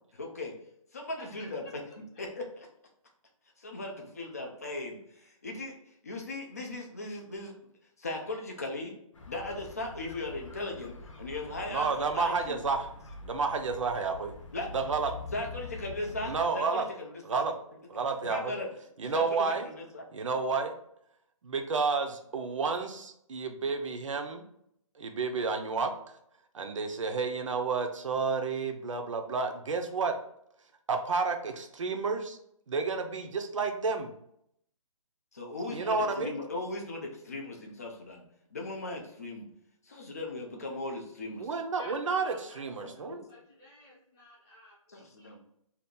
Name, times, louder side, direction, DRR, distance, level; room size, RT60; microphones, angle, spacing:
voice 1, 0.1-0.5 0.9-2.7 3.6-7.5 8.0-8.9 9.3-12.6 14.5-14.7 15.3-17.4 18.2-18.7 19.1-20.0 35.3-38.2 38.5-39.5 39.8-41.5 42.8-43.2 44.9-45.4, left 2 dB, 25° left, 1 dB, 0.4 m, -38 dB
sound 1, 9.1-16.4, left 3 dB, 60° left, 0.8 m, -45 dB
voice 2, 11.7-12.9 13.2-14.3 14.7-15.1 16.3-16.8 17.2-17.5 17.9-18.5 19.0-19.7 20.1-20.7 21.4-24.4 25.0-25.9 26.5-30.1 30.9-32.4 32.7-34.1 35.7-36.3 41.4-43.2, right 4 dB, 60° right, 6 dB, 0.5 m, -30 dB
voice 3, 41.8-42.6 42.9-45.3, left 1 dB, 10° left, -10 dB, 0.8 m, -52 dB
2.7 x 2.4 x 3.6 m, 0.72 s
hypercardioid pair, 180°, 18 cm